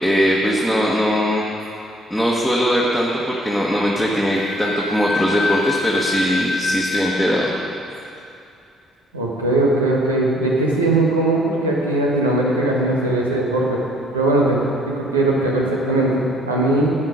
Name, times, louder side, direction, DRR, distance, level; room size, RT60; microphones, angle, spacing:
voice 1, 0.0-1.4 2.1-7.5, equal, 5° right, -4 dB, 1.6 m, -20 dB
Wind instrument woodwind instrument, 4.4-7.2, left 3 dB, 65° left, 1.4 m, -25 dB
voice 2, 9.1-13.8 14.1-14.6 14.9-16.9, right 2 dB, 85° right, -3 dB, 1.4 m, -19 dB
12.0 x 8.7 x 5.1 m, 2.6 s
figure-of-eight pair, 45°, 0 cm